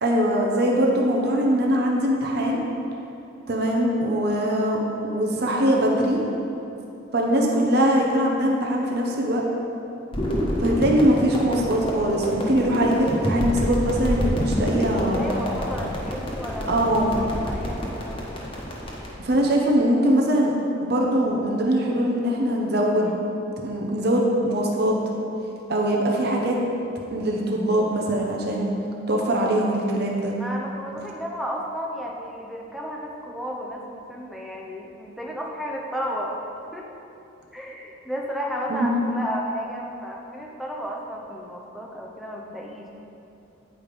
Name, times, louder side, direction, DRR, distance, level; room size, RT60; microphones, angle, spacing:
voice 1, 0.0-2.6 3.5-4.8 5.0-6.2 7.1-9.4 10.6-15.2 16.7-17.1 19.2-20.5 20.8-23.2 23.6-24.9 25.7-26.6 27.1-28.7 29.1-30.3 38.7-38.9, right 1 dB, 55° right, -1 dB, 0.8 m, -22 dB
sound 1, 10.1-19.1, equal, 25° left, 1.2 m, -27 dB
voice 2, 14.6-18.3 30.4-36.5 36.7-36.9 37.5-42.9, equal, ahead, -2 dB, 0.6 m, -33 dB
9.0 x 4.9 x 5.2 m, 2.8 s
head